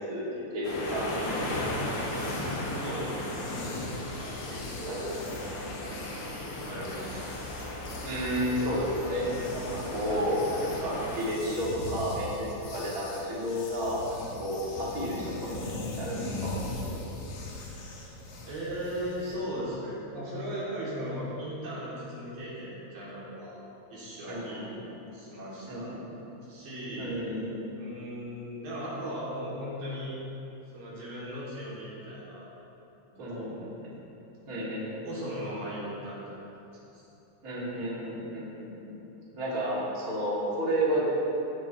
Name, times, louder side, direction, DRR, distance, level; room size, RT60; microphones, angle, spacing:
voice 1, 0.1-1.4 4.8-5.1 8.0-9.2 9.5-15.6 16.0-16.5 24.3-24.8 25.7-26.2 27.0-27.5 33.2-33.5 34.5-35.0 37.4-38.9 39.4-41.2, equal, 25° right, -8 dB, 2.9 m, -31 dB
sound 1, 0.6-11.2, left 1 dB, 60° left, 3.5 m, -36 dB
sound 2, 1.8-19.4, left 2 dB, 80° left, 3.3 m, -41 dB
voice 2, 2.8-3.4 3.6-4.0 4.5-5.0 6.4-7.3 18.4-23.6 23.9-26.0 26.5-27.2 27.8-30.1 30.7-32.5 33.2-33.6 35.0-36.4 36.9-37.0, equal, 70° right, -8 dB, 4.7 m, -37 dB
16.5 x 11.5 x 3.3 m, 3.0 s
omnidirectional pair, 4.1 m